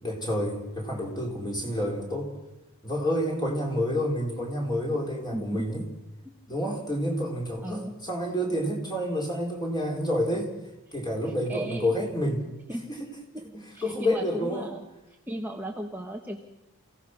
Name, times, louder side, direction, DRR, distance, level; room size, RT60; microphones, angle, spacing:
voice 1, 0.0-2.3 2.8-5.8 6.5-10.5 10.9-12.4 13.5-14.7, equal, 20° left, 0 dB, 4.2 m, -29 dB
voice 2, 5.3-5.8 6.2-6.4 7.6-7.9 11.2-11.9 12.7-12.9 13.3-13.4 13.7-14.8 15.3-16.4, right 1 dB, 10° right, 1 dB, 1.2 m, -35 dB
28.5 x 16.5 x 6.1 m, 0.93 s
head